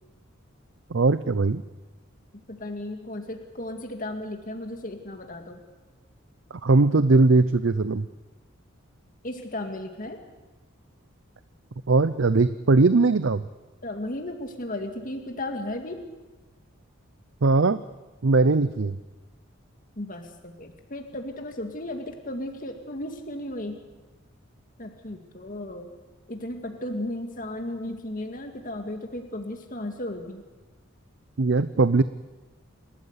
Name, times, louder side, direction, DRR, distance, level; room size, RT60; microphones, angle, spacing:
voice 1, 0.9-1.6 6.5-8.1 11.9-13.4 17.4-17.8 18.2-19.0 31.4-32.0, right 3 dB, 65° right, 13 dB, 0.6 m, -20 dB
voice 2, 2.5-5.6 9.2-10.2 13.8-16.0 20.0-23.8 24.8-25.9 26.3-30.4, left 1 dB, 40° left, 4 dB, 2.1 m, -35 dB
28.5 x 13.5 x 8.2 m, 1.2 s
head